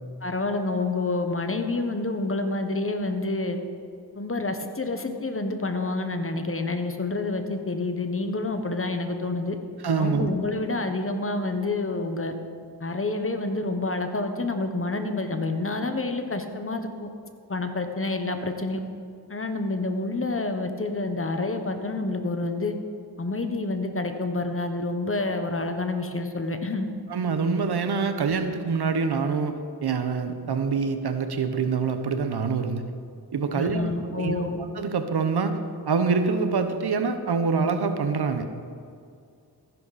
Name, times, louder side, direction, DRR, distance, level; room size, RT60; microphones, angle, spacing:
voice 1, 0.2-3.6 4.1-9.6 10.0-12.3 12.8-17.1 17.5-18.8 19.3-22.7 23.2-26.9 33.5-34.6, left 2 dB, 30° left, 6 dB, 1.2 m, -28 dB
voice 2, 9.8-10.3 27.1-29.6 29.8-32.8 33.3-34.3 34.7-35.6 35.9-38.5, right 5 dB, 70° right, 8 dB, 1.0 m, -25 dB
15.0 x 10.5 x 4.2 m, 2.3 s
cardioid pair, 70°, 41 cm